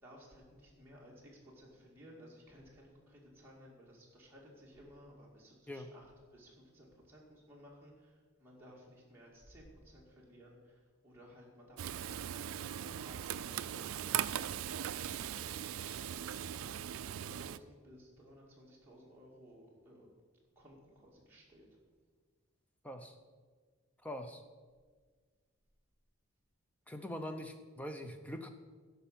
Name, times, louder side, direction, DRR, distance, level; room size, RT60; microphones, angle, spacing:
voice 1, 0.0-14.4 14.8-20.1 20.6-21.8, equal, 10° right, -5 dB, 2.2 m, -58 dB
Frying (food), 11.8-17.6, right 10 dB, 80° right, 0.4 m, -39 dB
voice 2, 22.8-23.2 24.0-24.4 26.9-28.5, left 1 dB, 5° left, 6 dB, 0.6 m, -43 dB
11.5 x 5.5 x 7.4 m, 1.5 s
head